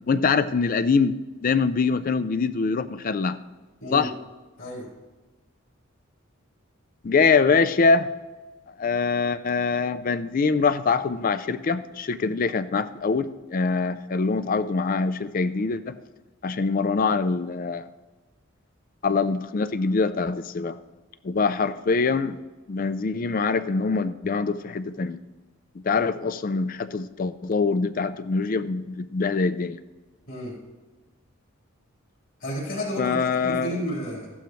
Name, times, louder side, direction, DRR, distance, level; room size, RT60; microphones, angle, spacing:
voice 1, 0.1-1.1 1.4-3.4 3.9-4.1 7.0-8.1 8.8-15.9 16.4-17.9 19.0-20.8 21.2-22.4 22.7-25.2 25.8-29.8 33.0-33.8, left 4 dB, 40° left, 13 dB, 0.4 m, -24 dB
voice 2, 32.4-34.3, equal, 60° left, -5 dB, 3.9 m, -32 dB
14.5 x 11.5 x 3.1 m, 1.2 s
head